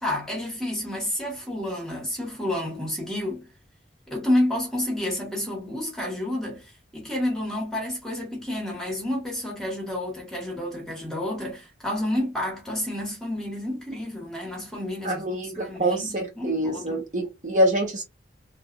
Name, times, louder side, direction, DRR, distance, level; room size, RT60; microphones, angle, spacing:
voice 1, 0.0-3.5 4.1-17.0, left 1 dB, ahead, 1.4 m, -30 dB
voice 2, 15.0-18.0, right 1 dB, 40° right, 1.1 m, -25 dB
3.3 x 2.6 x 2.5 m
head